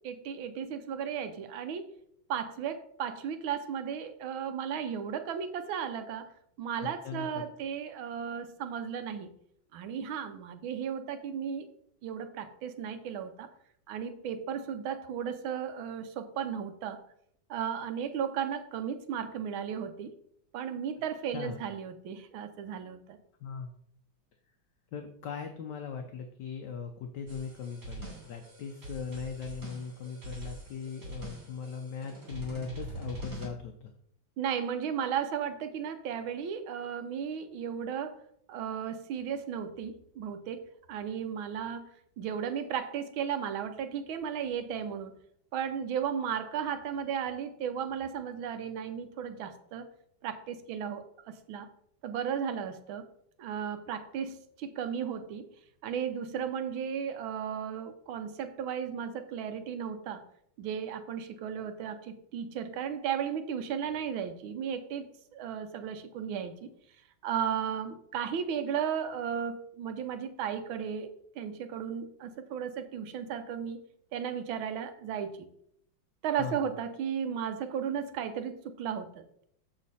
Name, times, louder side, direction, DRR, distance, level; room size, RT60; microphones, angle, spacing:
voice 1, 0.0-1.9 2.3-6.3 6.6-9.3 9.7-11.7 12.0-13.5 13.9-17.0 17.5-20.1 20.5-23.2 34.4-38.2 38.5-41.9 42.2-45.2 45.5-49.9 50.2-51.7 52.0-53.1 53.4-55.5 55.8-60.2 60.6-66.7 67.2-73.8 74.1-75.4 76.2-79.4, right 8 dB, 85° right, 9 dB, 1.6 m, -35 dB
voice 2, 6.8-7.4 21.3-21.6 23.4-23.7 24.9-33.9 76.4-76.7, left 6 dB, 65° left, 5 dB, 1.3 m, -39 dB
sound 1, 27.3-33.5, right 2 dB, 55° right, 3.4 m, -43 dB
7.3 x 6.8 x 4.1 m, 0.70 s
omnidirectional pair, 2.2 m